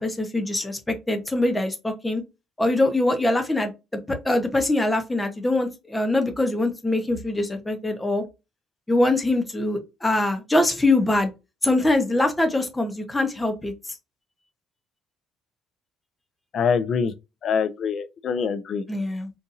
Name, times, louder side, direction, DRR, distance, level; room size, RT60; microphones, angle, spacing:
voice 1, 0.0-2.2 2.6-3.7 4.1-8.2 8.9-11.3 11.6-13.7 18.9-19.3, left 2 dB, 10° left, 0.8 m, -23 dB
voice 2, 16.5-17.1 17.4-18.8, left 6 dB, 50° left, 0.4 m, -24 dB
4.1 x 2.5 x 2.5 m
cardioid pair, 140°, 0 cm